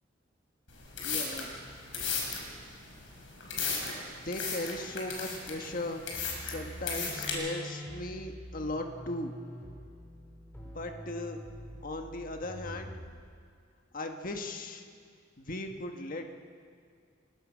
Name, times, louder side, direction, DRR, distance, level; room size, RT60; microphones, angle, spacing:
sound 1, 0.7-7.3, left 5 dB, 70° left, 5.9 m, -36 dB
voice 1, 1.0-1.5 4.1-6.0 6.4-9.3 10.6-11.4 11.8-12.9 13.9-14.8 15.4-16.4, left 1 dB, 45° left, 4 dB, 1.5 m, -37 dB
sound 2, 6.1-13.3, equal, 10° left, 4.6 m, -45 dB
29.0 x 18.5 x 6.3 m, 2.1 s
head